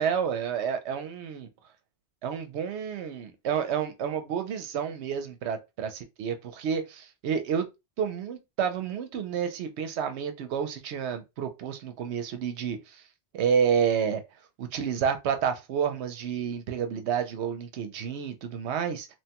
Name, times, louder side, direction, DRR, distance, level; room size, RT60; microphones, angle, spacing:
voice 1, 0.0-1.5 2.2-7.7 8.0-13.0 13.3-14.2 14.6-19.1, right 7 dB, 75° right, 0.9 m, -30 dB
3.0 x 2.2 x 2.8 m
omnidirectional pair, 1.1 m